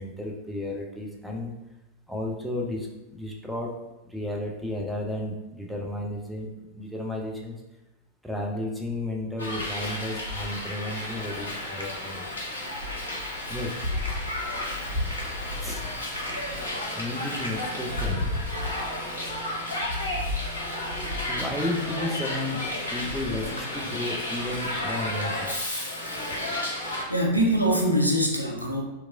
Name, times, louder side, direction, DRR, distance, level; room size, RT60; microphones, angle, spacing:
voice 1, 0.0-1.6 2.1-3.8 4.0-6.5 6.7-7.6 8.2-12.2 13.5-13.8 15.6-15.8 16.9-18.3 21.3-25.5, left 1 dB, ahead, -2 dB, 0.5 m, -33 dB
Hiss, 9.4-27.0, left 1 dB, 75° left, 0.6 m, -31 dB
voice 2, 26.1-26.8 27.1-28.8, equal, 90° right, 0 dB, 0.4 m, -24 dB
2.9 x 2.3 x 2.5 m, 0.99 s
figure-of-eight pair, 90°, 0 cm